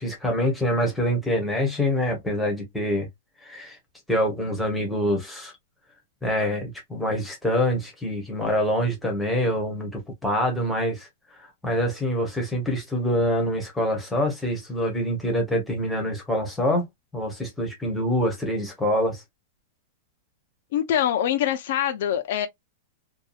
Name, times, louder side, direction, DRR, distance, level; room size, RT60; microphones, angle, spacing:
voice 1, 0.0-3.1 3.4-3.8 4.1-5.5 6.2-11.1 11.6-16.9 17.1-19.2, equal, 5° left, 0.9 m, -25 dB
voice 2, 20.7-22.5, left 10 dB, 50° left, 0.5 m, -24 dB
2.7 x 2.3 x 2.3 m
supercardioid pair, 175°, 0 cm